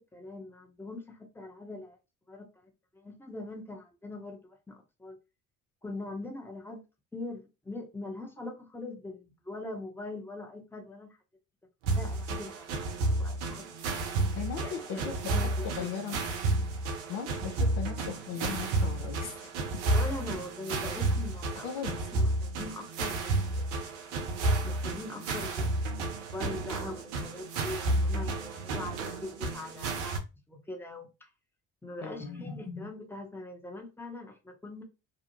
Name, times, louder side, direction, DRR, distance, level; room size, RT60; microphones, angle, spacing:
voice 1, 0.0-2.0 2.3-5.2 5.8-6.8 7.1-11.2 11.9-12.9 13.2-14.2 14.6-16.0 19.9-21.7 22.1-24.0 24.6-30.2 30.5-31.3 31.8-34.8, left 2 dB, 5° left, 2 dB, 0.9 m, -42 dB
sound 1, 11.8-30.2, right 2 dB, 85° right, 0.6 m, -31 dB
voice 2, 14.4-15.1 15.8-16.2 17.1-19.4 19.7-19.8 21.6-22.0 32.0-32.4, left 7 dB, 65° left, 5 dB, 0.7 m, -38 dB
2.6 x 2.1 x 2.9 m, 0.27 s
hypercardioid pair, 60°, 35 cm